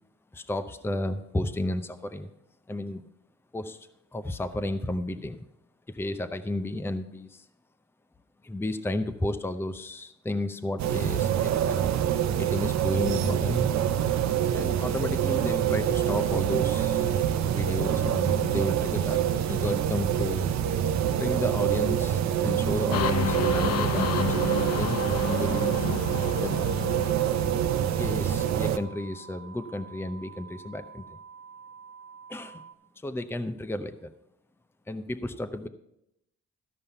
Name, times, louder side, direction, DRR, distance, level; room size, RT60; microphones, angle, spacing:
voice 1, 0.3-2.3 2.7-3.1 3.5-5.5 5.9-7.5 8.4-12.0 12.4-13.7 14.5-20.5 21.1-25.7 26.4-26.5 28.0-31.2 32.3-32.6 33.0-34.1 34.9-35.7, left 1 dB, 10° left, 9 dB, 0.6 m, -32 dB
sound 1, 10.8-28.8, right 10 dB, 65° right, 0.7 m, -26 dB
sound 2, 22.8-32.7, right 6 dB, 45° right, 1.1 m, -48 dB
sound 3, 22.9-28.6, left 9 dB, 55° left, 0.5 m, -32 dB
13.5 x 5.4 x 5.6 m, 0.81 s
cardioid pair, 90°, 30 cm